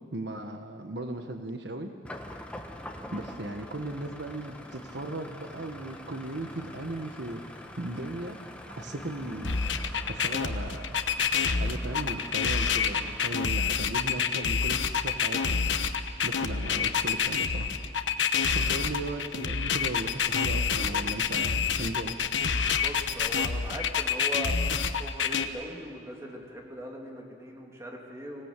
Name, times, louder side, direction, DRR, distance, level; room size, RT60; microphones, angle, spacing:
voice 1, 0.1-1.9 3.1-7.4 7.8-8.4 8.8-9.6 10.1-11.0 11.6-15.6 16.2-17.7 18.5-22.2, right 1 dB, 65° right, 6 dB, 1.3 m, -37 dB
sound 1, 2.0-13.5, left 1 dB, 5° left, 1.4 m, -45 dB
sound 2, 9.4-25.4, left 6 dB, 80° left, 1.1 m, -27 dB
voice 2, 22.7-24.6 25.0-28.5, equal, 15° right, -1 dB, 3.1 m, -40 dB
25.5 x 17.5 x 8.3 m, 2.5 s
head